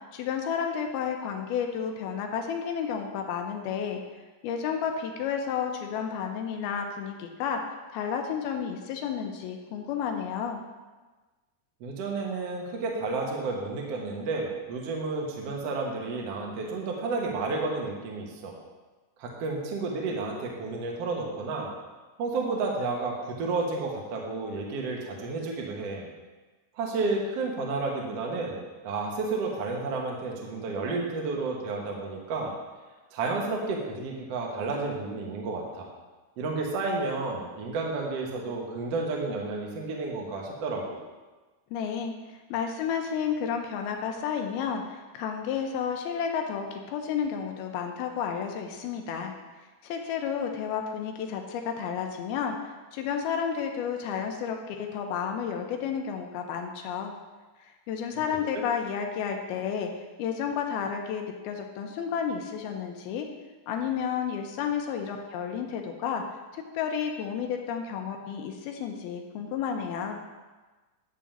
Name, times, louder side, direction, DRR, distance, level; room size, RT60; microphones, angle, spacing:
voice 1, 0.1-4.0 4.4-7.6 7.9-10.6 41.7-42.1 42.5-49.3 49.8-57.1 57.6-59.9 60.2-63.3 63.7-66.2 66.5-70.2, left 7 dB, 80° left, 3 dB, 2.6 m, -31 dB
voice 2, 11.8-18.6 19.2-21.7 22.2-26.1 26.7-32.5 33.1-35.9 36.4-40.8 58.5-58.6, right 3 dB, 60° right, -1 dB, 1.7 m, -31 dB
11.0 x 3.7 x 7.2 m, 1.2 s
omnidirectional pair, 4.6 m